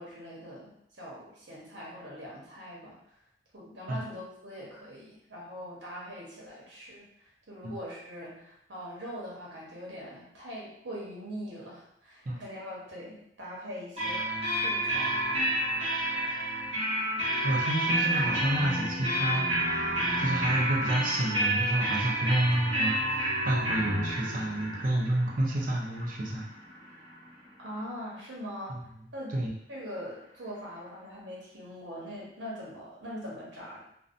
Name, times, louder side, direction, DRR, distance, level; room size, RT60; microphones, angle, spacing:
voice 1, 0.0-3.0 3.5-15.1 27.6-28.8 29.1-29.3 29.7-33.8, equal, 75° right, -4 dB, 0.9 m, -42 dB
sound 1, 14.0-27.5, right 1 dB, 35° right, 0.9 m, -30 dB
voice 2, 17.4-26.5 28.7-28.8 29.3-29.5, right 1 dB, 50° right, -1 dB, 0.5 m, -29 dB
2.6 x 2.1 x 2.5 m, 0.75 s
head